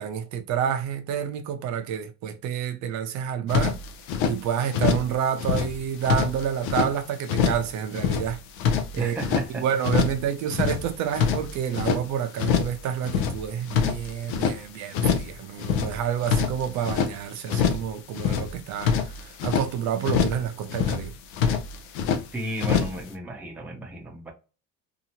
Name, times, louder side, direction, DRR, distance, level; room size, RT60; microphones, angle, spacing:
voice 1, 0.0-3.8 4.2-8.4 8.9-9.2 9.5-21.1, right 9 dB, 55° right, 0.5 m, -29 dB
sound 1, 3.5-4.4 4.7-5.1 5.4-6.9 7.3-7.7 7.9-9.5 9.8-10.2 10.5-12.0 12.4-12.8 13.0-14.6 14.9-15.3 15.6-17.1 17.5-17.9 18.1-19.7 20.0-20.4 20.7-21.1 21.3-22.2 22.6-23.0, left 7 dB, 90° left, 0.7 m, -25 dB
voice 2, 8.9-9.6 22.3-24.3, right 1 dB, 5° right, 0.6 m, -33 dB
2.8 x 2.4 x 2.8 m
cardioid pair, 150°, 34 cm